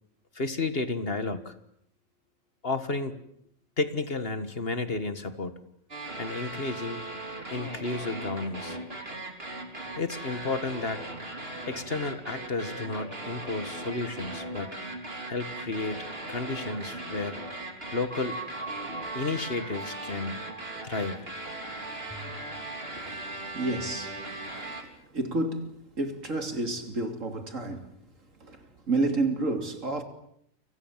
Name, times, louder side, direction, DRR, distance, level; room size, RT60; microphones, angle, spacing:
voice 1, 0.3-1.5 2.6-3.2 3.8-5.6 6.2-7.0 7.5-8.8 10.0-11.1 11.7-14.7 15.3-17.4 17.9-18.4 19.1-20.4 20.8-21.2, left 3 dB, 45° left, 1.9 m, -32 dB
sound 1, 5.9-24.8, right 2 dB, 45° right, 3.8 m, -38 dB
sound 2, 18.1-20.8 22.1-22.3, right 3 dB, 5° left, 3.1 m, -42 dB
voice 2, 23.0-28.0 28.4-30.0, right 2 dB, 70° right, 3.4 m, -31 dB
29.5 x 26.0 x 7.4 m
omnidirectional pair, 1.4 m